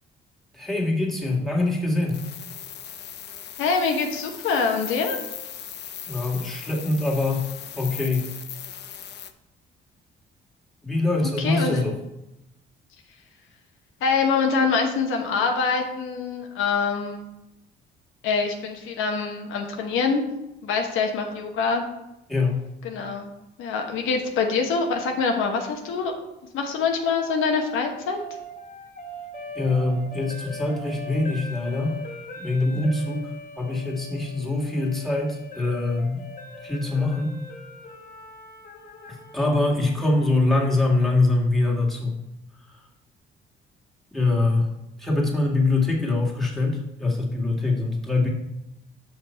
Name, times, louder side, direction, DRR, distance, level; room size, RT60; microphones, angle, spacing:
voice 1, 0.5-2.3 6.1-8.3 10.8-12.0 22.3-22.7 29.6-32.0 32.4-33.3 33.6-36.3 36.6-37.4 39.1-42.2 44.1-44.7 45.0-48.3, left 2 dB, ahead, -1 dB, 1.9 m, -24 dB
sound 1, 2.1-9.3, left 9 dB, 60° left, 0.6 m, -38 dB
voice 2, 3.6-5.2 11.2-11.8 14.0-17.3 18.2-20.2 20.6-21.9 22.8-23.3 23.6-26.1 26.5-28.2, left 5 dB, 90° left, 3 dB, 1.1 m, -25 dB
sound 2, 27.0-41.1, left 1 dB, 45° left, 1.6 m, -41 dB
6.7 x 5.8 x 4.4 m, 0.90 s
cardioid pair, 90°, 20 cm